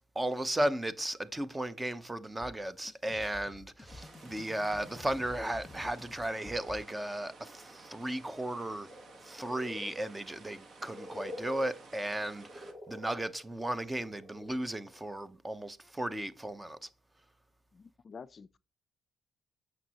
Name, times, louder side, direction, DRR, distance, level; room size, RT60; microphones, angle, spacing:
voice 1, 0.1-8.9 9.2-16.9, right 1 dB, 15° right, 0.8 m, -35 dB
sound 1, 2.4-6.8, left 2 dB, 20° left, 1.2 m, -50 dB
sound 2, 3.9-12.7, right 3 dB, 50° right, 1.3 m, -54 dB
sound 3, 8.9-14.6 14.9-15.0, left 1 dB, 30° right, 4.4 m, -47 dB
voice 2, 17.7-18.6, left 5 dB, 40° left, 0.4 m, -49 dB
9.0 x 6.3 x 2.9 m
supercardioid pair, 70°, 0 cm